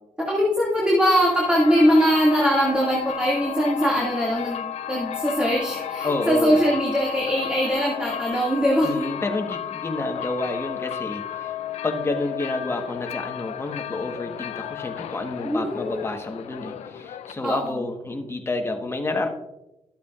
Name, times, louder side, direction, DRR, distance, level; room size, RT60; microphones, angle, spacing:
voice 1, 0.2-9.0 15.4-16.0 17.4-17.8, equal, 10° right, -5 dB, 2.0 m, -21 dB
sound 1, 1.2-17.7, left 10 dB, 85° left, 0.5 m, -33 dB
voice 2, 6.0-6.6 8.8-11.5 11.8-19.3, left 2 dB, 20° left, 4 dB, 1.2 m, -29 dB
13.0 x 8.2 x 2.4 m, 0.95 s
cardioid pair, 100°, 11 cm